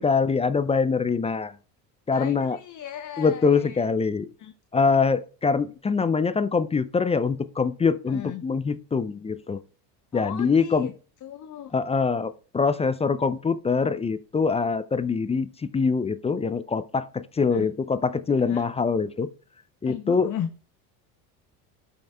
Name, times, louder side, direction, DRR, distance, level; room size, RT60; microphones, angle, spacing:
voice 1, 0.0-1.5 2.1-2.6 3.2-4.3 4.7-9.6 10.1-10.9 11.7-19.3 19.8-20.3, left 5 dB, 15° left, 0.4 m, -24 dB
voice 2, 2.1-3.9 4.4-4.5 8.1-8.4 10.1-10.9 11.2-11.7 17.5-17.7 18.5-18.6 19.8-20.5, left 10 dB, 40° left, 0.8 m, -36 dB
13.0 x 5.5 x 2.3 m
hypercardioid pair, 80°, 47 cm